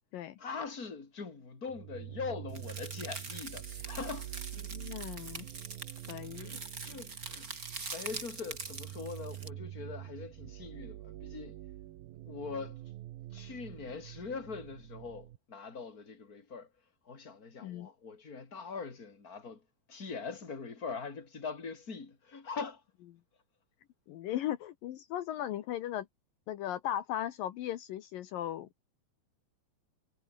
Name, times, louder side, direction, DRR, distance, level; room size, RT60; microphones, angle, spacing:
voice 1, 0.4-4.3 6.4-7.5 7.9-11.6 12.3-12.8 13.3-16.7 17.1-19.6 19.9-22.8, left 5 dB, 25° left, 3.8 m, -42 dB
sound 1, 1.7-15.4, right 14 dB, 85° right, 3.0 m, -46 dB
sound 2, 2.5-9.5, right 4 dB, 25° right, 3.2 m, -44 dB
voice 2, 4.7-5.5 6.1-6.6 17.6-17.9 24.1-26.1 26.5-28.7, left 12 dB, 75° left, 2.8 m, -37 dB
omnidirectional pair, 4.2 m